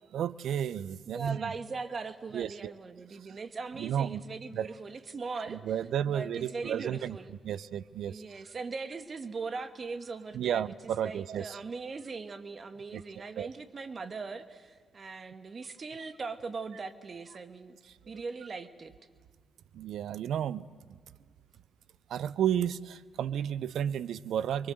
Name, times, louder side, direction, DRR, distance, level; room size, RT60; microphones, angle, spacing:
voice 1, 0.1-1.5 2.3-2.7 3.1-3.4 3.8-4.7 5.5-7.2 7.4-8.2 10.3-11.6 12.9-13.5 19.7-20.7 22.1-24.7, right 9 dB, 70° right, 18 dB, 0.7 m, -32 dB
voice 2, 1.1-5.6 6.1-7.4 8.1-10.7 11.0-17.8 18.1-18.9, right 4 dB, 50° right, 9 dB, 1.8 m, -40 dB
26.0 x 23.5 x 7.9 m, 1.5 s
hypercardioid pair, 45°, 0 cm